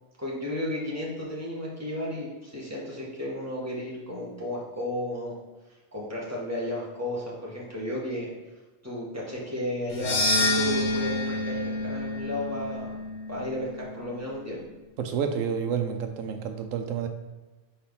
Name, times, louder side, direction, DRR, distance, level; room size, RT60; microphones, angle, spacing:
voice 1, 0.2-5.3 5.9-8.3 8.8-13.0 13.3-14.6, left 1 dB, 10° right, -5 dB, 1.6 m, -33 dB
sound 1, 9.9-14.2, left 2 dB, 60° left, 1.1 m, -28 dB
voice 2, 15.0-17.1, right 7 dB, 85° right, 6 dB, 1.0 m, -29 dB
5.2 x 4.4 x 5.4 m, 1.2 s
omnidirectional pair, 1.3 m